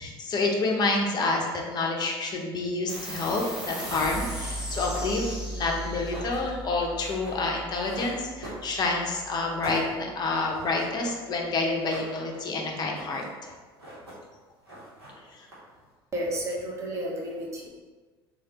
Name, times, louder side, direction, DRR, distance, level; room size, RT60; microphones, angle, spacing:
voice 1, 0.0-13.5 15.3-15.4, left 3 dB, 30° left, 0 dB, 0.6 m, -28 dB
sound 1, 2.9-9.8, right 1 dB, 5° right, 1.4 m, -37 dB
sound 2, 3.6-9.1 9.4-11.0 11.2-11.3 11.6-12.5 12.8-13.4 13.6-14.4 14.6-15.9, right 1 dB, 80° right, 0.9 m, -44 dB
voice 2, 16.1-17.7, equal, 20° right, -3 dB, 0.8 m, -32 dB
3.2 x 2.2 x 2.8 m, 1.3 s
figure-of-eight pair, 65°, 13 cm